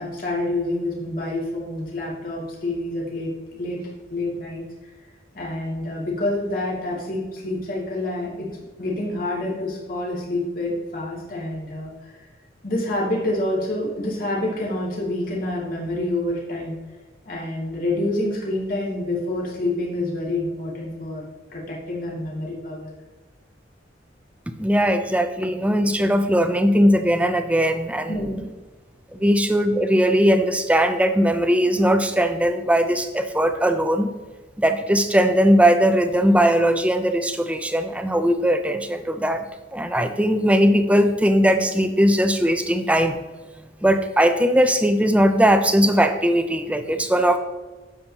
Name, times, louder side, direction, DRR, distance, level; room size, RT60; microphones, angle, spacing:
voice 1, 0.0-3.8 4.1-4.6 5.3-8.5 8.8-12.3 12.6-16.8 17.2-21.2 21.5-22.9 28.1-28.4, left 1 dB, 50° left, -4 dB, 2.5 m, -27 dB
voice 2, 24.6-28.1 29.1-34.1 34.6-39.4 39.7-43.2 43.8-47.4, equal, 5° right, 8 dB, 0.6 m, -19 dB
9.6 x 7.3 x 3.0 m, 1.3 s
head